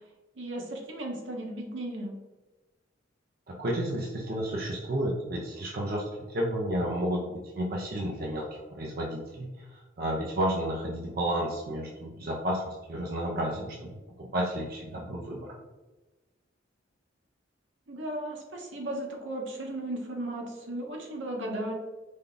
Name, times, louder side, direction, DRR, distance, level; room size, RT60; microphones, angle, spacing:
voice 1, 0.4-2.1 17.9-21.7, right 1 dB, 80° right, 0 dB, 1.0 m, -35 dB
voice 2, 3.5-13.9 14.2-15.5, right 1 dB, 55° right, -2 dB, 0.6 m, -32 dB
5.0 x 2.3 x 3.8 m, 1.2 s
head